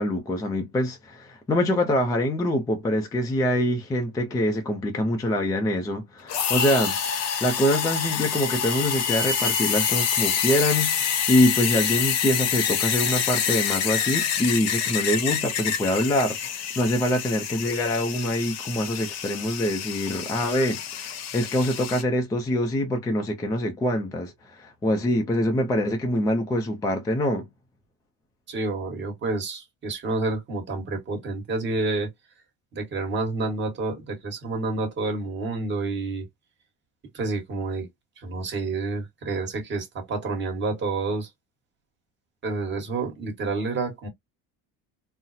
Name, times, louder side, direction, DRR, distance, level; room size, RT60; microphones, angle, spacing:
voice 1, 0.0-27.5, left 1 dB, 10° left, 0.4 m, -25 dB
sound 1, 6.3-22.0, left 8 dB, 45° left, 0.8 m, -27 dB
voice 2, 28.5-32.1 32.7-36.3 37.1-37.9 38.2-41.3 42.4-44.1, right 3 dB, 30° right, 1.4 m, -29 dB
3.9 x 2.0 x 2.6 m
cardioid pair, 155°, 36 cm